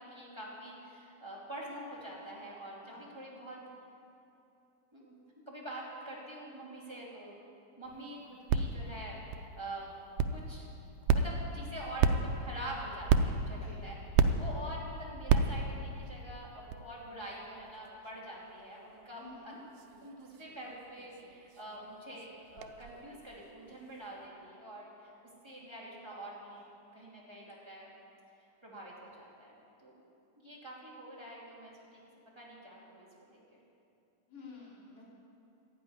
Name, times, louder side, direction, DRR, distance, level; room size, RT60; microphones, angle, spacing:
voice 1, 0.0-3.6 4.9-5.1 5.5-7.3 7.8-9.9 10.3-10.7 11.1-19.6 20.0-25.1 25.4-26.7 26.9-27.9 28.6-29.5 29.8-29.9 30.4-32.0 32.3-33.6, right 1 dB, 10° right, -5 dB, 2.4 m, -45 dB
sound 1, 7.8-24.3, right 5 dB, 90° right, 2.2 m, -34 dB
voice 2, 19.1-19.6 34.3-35.0, left 4 dB, 25° left, -5 dB, 3.4 m, -51 dB
13.0 x 10.0 x 9.4 m, 2.7 s
omnidirectional pair, 3.6 m